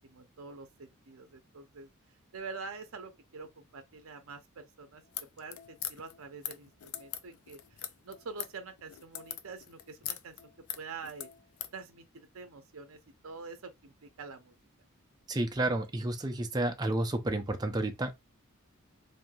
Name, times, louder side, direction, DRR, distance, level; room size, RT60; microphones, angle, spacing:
voice 1, 0.0-1.9 2.3-5.0 5.4-10.3 10.8-11.3 11.7-14.5, right 4 dB, 70° right, 0.6 m, -46 dB
sound 1, 5.0-11.8, left 11 dB, 75° left, 0.4 m, -41 dB
voice 2, 15.3-18.1, right 1 dB, 20° right, 0.5 m, -31 dB
3.2 x 2.7 x 2.3 m
head